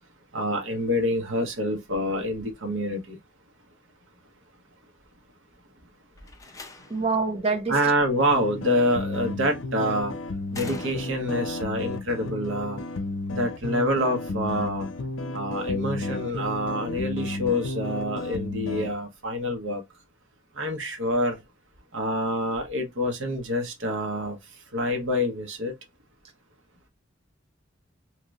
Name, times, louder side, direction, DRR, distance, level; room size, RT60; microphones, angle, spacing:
voice 1, 0.3-3.2 7.7-10.1 10.5-12.8 13.3-14.9 15.3-19.8 20.6-21.4 21.9-24.4 24.7-25.7, equal, 85° right, 1.0 m, -27 dB
Slam, 6.2-7.2 8.7-9.1 10.5-11.5, left 3 dB, 15° left, 0.4 m, -43 dB
voice 2, 6.9-7.8, right 4 dB, 30° right, 0.7 m, -25 dB
sound 1, 8.3-18.9, left 2 dB, 75° left, 0.5 m, -32 dB
3.1 x 2.9 x 2.4 m
head